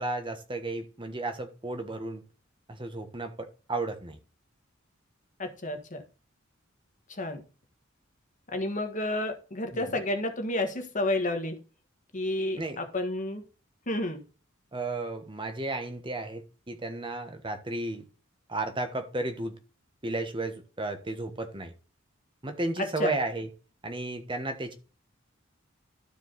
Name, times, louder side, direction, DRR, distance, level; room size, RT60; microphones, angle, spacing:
voice 1, 0.0-2.2 2.7-4.2 9.7-9.9 12.6-12.8 14.7-18.0 18.5-19.6 20.0-21.7 22.4-23.5 23.8-24.7, right 2 dB, 25° right, 1.3 m, -33 dB
voice 2, 5.4-6.0 7.1-7.4 8.5-11.6 12.1-13.4 13.9-14.2 23.0-23.2, left 1 dB, 40° left, 1.5 m, -30 dB
12.5 x 4.8 x 4.0 m
head